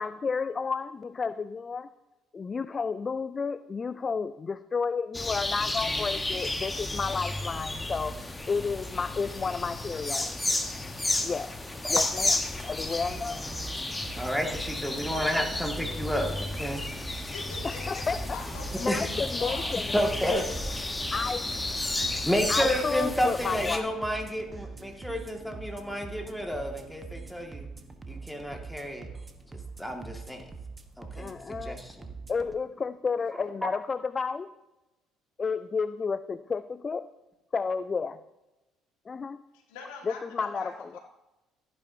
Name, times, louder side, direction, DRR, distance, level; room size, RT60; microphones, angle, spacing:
voice 1, 0.0-1.9 2.3-10.4 11.2-11.6 11.9-13.4 17.6-18.4 18.8-19.9 21.1-21.5 22.5-23.8 31.2-31.8 32.3-34.5 35.4-37.1 37.5-38.2 39.1-39.4 40.1-41.0, left 5 dB, 35° left, 14 dB, 0.4 m, -31 dB
sound 1, 5.1-23.8, left 2 dB, 15° left, 1.2 m, -32 dB
sound 2, 12.8-32.5, right 4 dB, 25° right, 1.2 m, -44 dB
voice 2, 14.1-16.8 18.9-19.1 19.9-20.5 22.3-27.7 28.1-29.1 29.8-30.4 31.0-32.1, equal, ahead, 2 dB, 2.1 m, -30 dB
voice 3, 17.3-18.0 18.3-18.9 19.2-20.4 39.5-41.0, left 4 dB, 75° left, 1 dB, 1.9 m, -43 dB
14.5 x 9.5 x 2.8 m, 1.0 s
hypercardioid pair, 55°, 0 cm